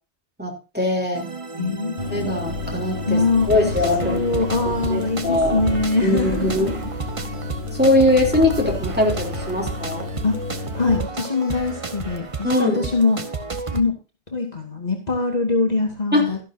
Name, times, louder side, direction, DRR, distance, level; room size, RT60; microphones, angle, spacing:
voice 1, 0.4-1.3 2.1-3.2 3.5-4.2 4.6-5.7 6.0-6.7 7.7-10.1 12.4-12.9 16.1-16.3, left 1 dB, 10° right, 0 dB, 3.1 m, -21 dB
sound 1, 1.1-13.8, right 4 dB, 30° right, 1.0 m, -32 dB
voice 2, 1.6-2.5 3.1-3.7 4.0-6.9 10.2-10.4 10.7-13.2 13.7-13.9 14.3-16.4, left 3 dB, 40° left, 1 dB, 2.4 m, -23 dB
sound 2, 2.0-11.0, left 3 dB, 60° right, 3.9 m, -31 dB
13.0 x 11.0 x 2.6 m, 0.32 s
omnidirectional pair, 1.1 m